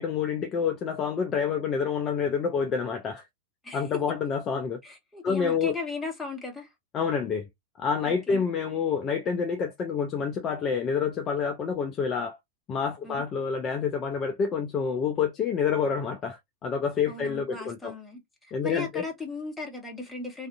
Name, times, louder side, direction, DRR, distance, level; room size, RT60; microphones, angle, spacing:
voice 1, 0.0-3.2 3.7-4.8 5.2-5.7 6.9-7.5 7.8-12.4 12.7-17.9 18.5-19.0, left 6 dB, 30° left, 0.4 m, -28 dB
voice 2, 4.8-6.7 8.0-8.4 13.0-13.2 17.1-18.2 18.6-20.5, left 4 dB, 10° left, 1.0 m, -36 dB
2.5 x 2.4 x 2.2 m
figure-of-eight pair, 90°, 0 cm